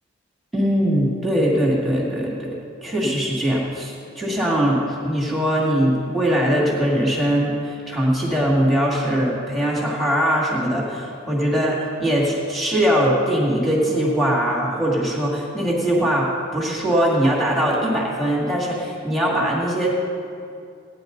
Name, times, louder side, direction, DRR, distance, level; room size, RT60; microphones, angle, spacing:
voice 1, 0.5-2.5 2.8-11.7 12.0-19.9, equal, ahead, -4 dB, 2.4 m, -21 dB
18.0 x 9.8 x 4.0 m, 2.4 s
head